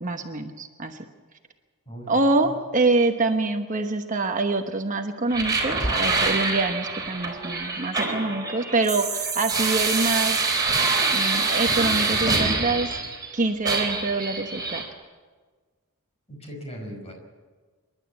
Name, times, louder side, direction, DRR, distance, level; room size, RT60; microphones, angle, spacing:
voice 1, 0.0-1.0 2.1-10.4 11.1-12.9 13.3-14.8, right 2 dB, 35° right, 5 dB, 1.0 m, -25 dB
voice 2, 1.9-2.5 16.3-17.1, equal, 30° left, 2 dB, 5.2 m, -39 dB
sound 1, 5.3-13.3 13.6-14.9, right 4 dB, 15° right, 3.9 m, -25 dB
27.0 x 11.5 x 8.5 m, 1.4 s
head